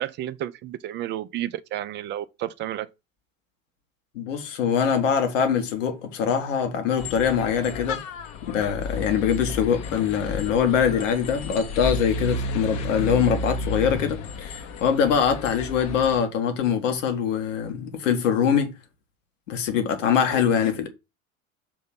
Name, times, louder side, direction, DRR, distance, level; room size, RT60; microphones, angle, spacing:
voice 1, 0.0-2.9, right 12 dB, 25° right, 0.5 m, -31 dB
voice 2, 4.1-8.0 8.5-18.7 19.5-20.9, left 7 dB, 60° left, 1.5 m, -23 dB
sound 1, 7.0-16.2, left 3 dB, 45° left, 1.0 m, -32 dB
6.9 x 3.1 x 5.8 m
figure-of-eight pair, 70°, 41 cm